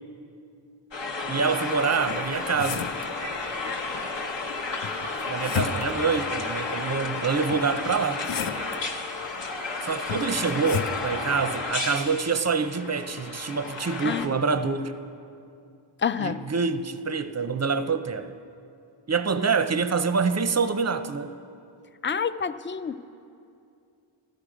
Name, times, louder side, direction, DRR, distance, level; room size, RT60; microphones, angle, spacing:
sound 1, 0.9-14.3, left 3 dB, 65° left, 1.2 m, -32 dB
voice 1, 1.3-2.9 5.3-8.3 9.8-15.0 16.2-18.3 19.1-21.3, right 5 dB, 35° right, 11 dB, 0.5 m, -26 dB
sound 2, 2.1-3.1 4.8-6.1 7.5-8.8 10.1-11.0, left 8 dB, 90° left, 0.6 m, -33 dB
voice 2, 16.0-16.4 22.0-23.1, left 6 dB, 30° left, 14 dB, 0.3 m, -28 dB
13.5 x 12.0 x 4.9 m, 2.5 s
wide cardioid pair, 80°, 47 cm